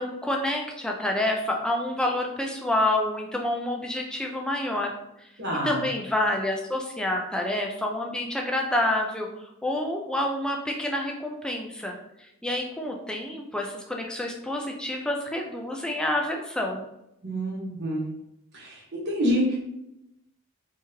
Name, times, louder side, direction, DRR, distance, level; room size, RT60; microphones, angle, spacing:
voice 1, 0.0-5.3 5.6-9.3 9.6-16.8, left 1 dB, 5° left, 0 dB, 0.4 m, -28 dB
voice 2, 5.4-5.8 17.2-18.1 18.5-19.6, equal, 50° right, -3 dB, 1.2 m, -27 dB
3.5 x 3.0 x 2.8 m, 0.86 s
head